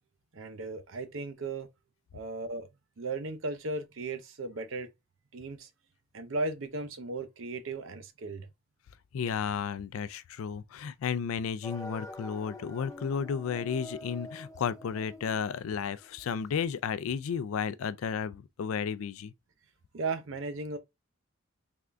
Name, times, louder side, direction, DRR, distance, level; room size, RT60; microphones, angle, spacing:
voice 1, 0.3-1.7 2.1-2.7 3.0-4.9 5.3-5.7 6.1-8.5 19.9-20.8, right 3 dB, 70° right, 0.6 m, -36 dB
voice 2, 9.1-19.3, left 6 dB, 80° left, 0.3 m, -33 dB
sound 1, 11.6-16.5, left 1 dB, 15° left, 0.5 m, -46 dB
3.6 x 3.3 x 2.4 m
head